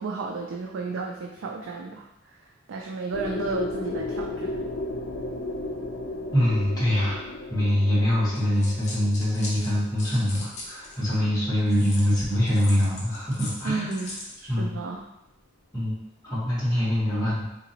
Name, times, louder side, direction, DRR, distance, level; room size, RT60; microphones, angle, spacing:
voice 1, 0.0-4.6 13.6-15.1, right 4 dB, 75° right, 0 dB, 0.4 m, -33 dB
sound 1, 3.1-11.0, left 2 dB, 65° left, 0.5 m, -34 dB
voice 2, 6.3-7.2 7.5-13.9 14.5-14.8 15.7-15.9 16.2-17.4, left 1 dB, 20° left, -8 dB, 1.4 m, -24 dB
sound 2, 8.3-11.1 11.7-14.4, left 2 dB, 40° left, 0.8 m, -40 dB
3.8 x 2.9 x 2.8 m, 0.89 s
head